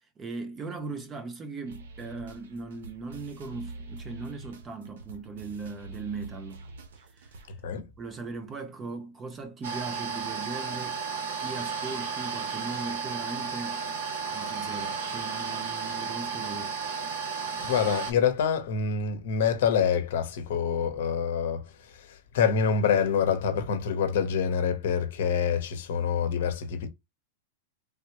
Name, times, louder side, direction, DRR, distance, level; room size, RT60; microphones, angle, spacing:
voice 1, 0.2-6.7 7.0-7.4 8.0-11.0 11.4-13.8 14.3-16.8, right 4 dB, 15° right, 0.4 m, -39 dB
sound 1, 1.7-7.5, right 3 dB, 90° right, 0.7 m, -45 dB
sound 2, 9.6-18.1, right 5 dB, 70° right, 1.0 m, -33 dB
voice 2, 17.6-26.9, left 7 dB, 65° left, 0.7 m, -26 dB
3.4 x 2.1 x 2.8 m
supercardioid pair, 165°, 0 cm